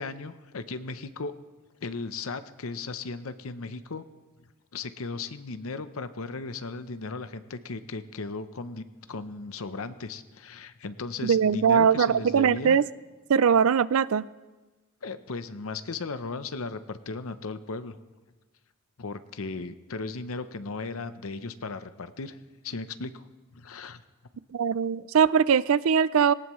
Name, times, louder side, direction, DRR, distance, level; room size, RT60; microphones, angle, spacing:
voice 1, 0.0-1.3 1.8-4.1 4.7-12.8 15.0-18.0 19.0-24.0, left 3 dB, 75° left, 11 dB, 0.8 m, -36 dB
voice 2, 11.2-12.8 13.3-14.3 24.5-26.3, right 7 dB, 75° right, 18 dB, 0.4 m, -21 dB
19.5 x 18.0 x 3.2 m, 1.2 s
head